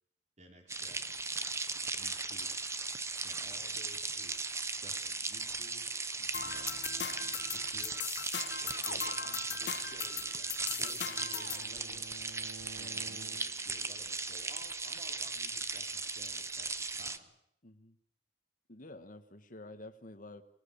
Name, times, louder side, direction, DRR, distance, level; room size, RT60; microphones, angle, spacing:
voice 1, 0.4-1.3 2.0-2.6 3.2-5.9 6.4-8.0 8.6-10.5 10.8-12.1 12.8-17.3, right 1 dB, 40° right, 3 dB, 4.6 m, -56 dB
sound 1, 0.7-17.2, right 3 dB, 15° right, 1.0 m, -37 dB
sound 2, 6.3-11.7, left 8 dB, 80° left, 1.7 m, -40 dB
Bowed string instrument, 9.9-13.9, right 4 dB, 90° right, 1.0 m, -53 dB
voice 2, 17.6-18.0 18.7-20.4, left 2 dB, 50° left, 8 dB, 1.6 m, -50 dB
24.0 x 19.0 x 8.7 m, 0.75 s
head